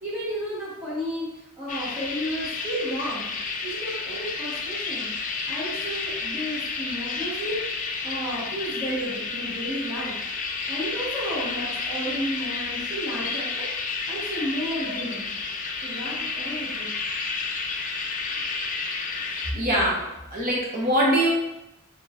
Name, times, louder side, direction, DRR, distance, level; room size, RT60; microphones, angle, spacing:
voice 1, 0.0-3.3 3.6-5.1 5.5-10.2 10.7-13.7 14.1-15.3 15.8-16.9, equal, 15° right, -13 dB, 1.1 m, -32 dB
sound 1, 1.7-19.5, left 4 dB, 35° left, 0.4 m, -31 dB
voice 2, 19.5-20.0 20.3-21.3, right 1 dB, 40° right, -4 dB, 1.1 m, -22 dB
4.6 x 3.0 x 2.5 m, 0.92 s
head